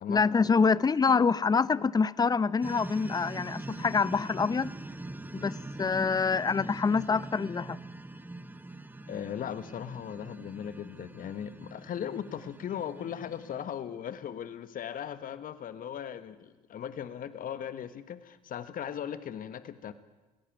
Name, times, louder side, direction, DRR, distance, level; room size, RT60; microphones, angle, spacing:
voice 1, 0.1-4.7 5.3-7.8, left 5 dB, 20° left, 20 dB, 0.7 m, -26 dB
sound 1, 2.6-13.6, right 2 dB, 10° right, 1.2 m, -43 dB
voice 2, 9.1-19.9, left 9 dB, 40° left, 13 dB, 1.4 m, -38 dB
22.0 x 16.5 x 9.2 m, 1.1 s
hypercardioid pair, 70°, 21 cm